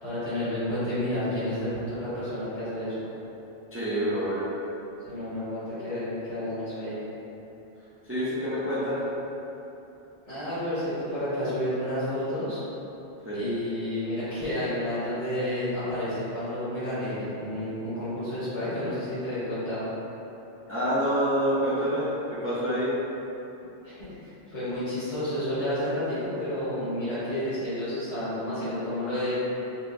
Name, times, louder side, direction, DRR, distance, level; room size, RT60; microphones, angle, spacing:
voice 1, 0.0-2.9 5.0-7.0 10.3-12.6 13.3-19.9 23.8-29.3, left 1 dB, 85° left, -15 dB, 1.8 m, -30 dB
voice 2, 3.7-4.5 8.0-9.0 13.2-13.4 20.7-22.9, equal, 15° right, -11 dB, 0.5 m, -27 dB
4.1 x 2.2 x 2.6 m, 3.0 s
omnidirectional pair, 1.2 m